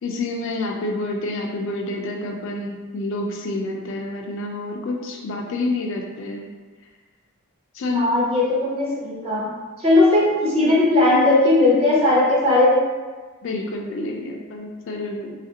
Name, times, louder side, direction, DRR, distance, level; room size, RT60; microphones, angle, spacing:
voice 1, 0.0-6.4 7.8-8.1 13.4-15.3, left 2 dB, 60° left, 1 dB, 0.4 m, -28 dB
voice 2, 7.9-12.8, left 2 dB, 25° right, -5 dB, 0.6 m, -18 dB
2.8 x 2.4 x 2.7 m, 1.4 s
head